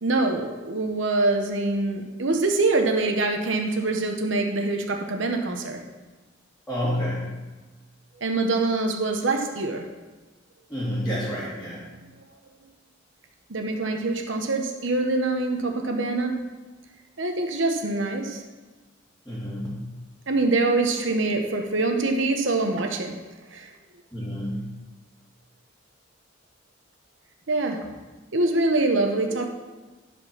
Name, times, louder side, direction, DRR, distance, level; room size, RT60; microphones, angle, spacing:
voice 1, 0.0-5.8 8.2-9.9 13.5-16.4 17.2-18.4 20.3-23.2 23.5-23.7 27.5-27.9 28.3-29.5, right 2 dB, 75° right, 3 dB, 1.0 m, -24 dB
voice 2, 6.7-7.4 10.7-11.9 19.3-19.9 24.1-24.7, equal, 5° left, -10 dB, 2.0 m, -29 dB
11.0 x 4.5 x 5.9 m, 1.3 s
head